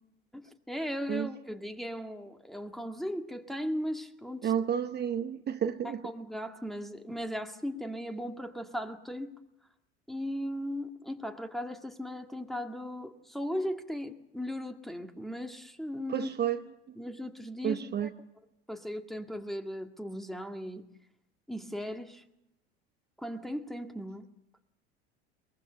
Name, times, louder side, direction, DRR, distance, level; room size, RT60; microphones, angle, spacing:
voice 1, 0.3-4.5 6.0-9.4 10.1-16.3 17.0-18.1 18.7-20.8 21.5-22.2 23.2-24.3, equal, ahead, 1.9 m, -37 dB
voice 2, 4.4-6.1 16.1-16.6 16.9-17.0 17.6-18.1, right 9 dB, 30° right, 0.9 m, -31 dB
22.5 x 20.5 x 6.9 m
hypercardioid pair, 80°, 32 cm